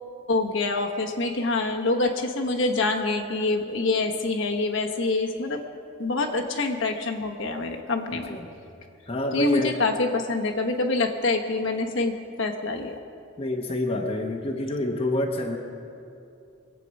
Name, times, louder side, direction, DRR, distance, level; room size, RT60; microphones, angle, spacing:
voice 1, 0.3-5.6 6.0-8.3 9.3-13.0, left 3 dB, 60° left, 2 dB, 1.1 m, -26 dB
voice 2, 9.1-9.8 13.4-15.6, left 1 dB, 25° left, 1 dB, 0.9 m, -27 dB
23.0 x 8.4 x 5.4 m, 2.6 s
head